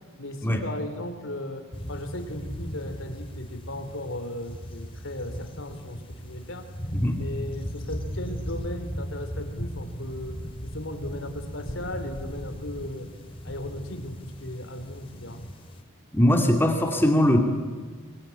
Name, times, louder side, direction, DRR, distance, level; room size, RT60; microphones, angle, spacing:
voice 1, 0.2-6.7 7.1-13.1 13.4-15.4, left 1 dB, 70° left, 7 dB, 3.8 m, -36 dB
sound 1, 1.7-15.8, equal, 25° left, 2.5 m, -37 dB
voice 2, 16.1-17.4, equal, 10° left, 3 dB, 2.5 m, -21 dB
26.0 x 23.0 x 9.9 m, 1.5 s
head